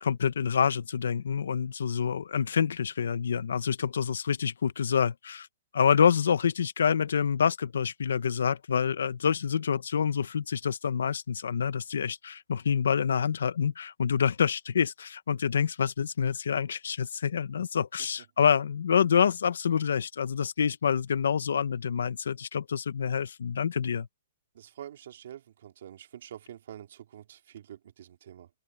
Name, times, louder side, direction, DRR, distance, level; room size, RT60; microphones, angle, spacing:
voice 1, 0.0-5.5 5.7-24.1, left 7 dB, 80° left, 0.9 m, -27 dB
voice 2, 24.5-28.5, right 10 dB, 50° right, 3.5 m, -46 dB
open air
hypercardioid pair, 170°, 0 cm